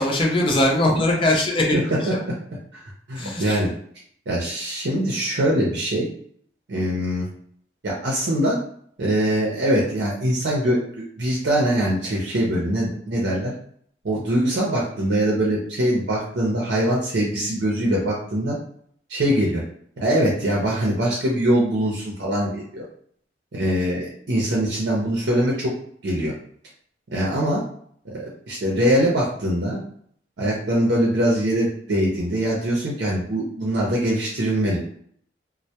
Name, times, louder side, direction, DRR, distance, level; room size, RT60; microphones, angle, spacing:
voice 1, 0.0-2.2 3.2-3.6, left 1 dB, 30° left, 0 dB, 0.5 m, -21 dB
voice 2, 1.7-2.3 3.1-3.7 4.3-6.1 6.7-7.3 7.8-8.6 9.0-10.8 11.2-13.5 14.0-18.6 19.1-19.6 20.0-22.9 23.5-25.7 26.0-26.3 27.1-27.6 28.1-29.8 30.4-34.8, right 1 dB, 70° right, -4 dB, 0.6 m, -22 dB
2.1 x 2.1 x 2.8 m, 0.62 s
head